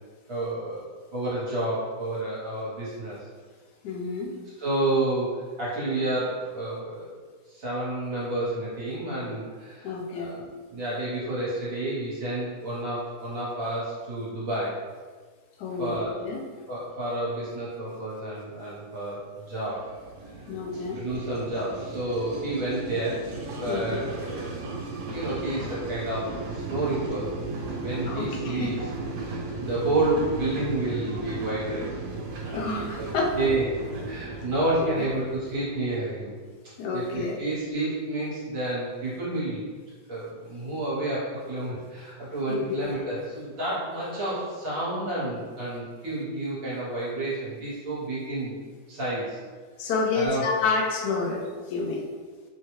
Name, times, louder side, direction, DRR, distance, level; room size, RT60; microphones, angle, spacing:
voice 1, 0.3-3.2 4.6-7.1 7.5-14.8 15.8-16.2 16.7-19.9 20.7-23.3 23.6-24.8 25.1-27.4 27.8-28.7 29.2-31.9 33.0-33.1 33.3-33.6 34.0-36.3 36.9-39.7 40.1-48.6 48.9-49.4 50.1-50.4, right 2 dB, 55° right, -9 dB, 1.5 m, -30 dB
voice 2, 3.8-4.4 9.8-10.3 15.6-16.4 20.5-21.0 23.7-24.0 28.1-28.7 32.5-33.5 35.0-35.1 36.8-37.4 42.5-42.9 49.8-52.0, left 4 dB, 80° left, 0 dB, 1.1 m, -29 dB
Metro overpass, 19.6-36.2, right 3 dB, 80° right, 1.2 m, -36 dB
3.2 x 2.3 x 3.0 m, 1.5 s
omnidirectional pair, 1.8 m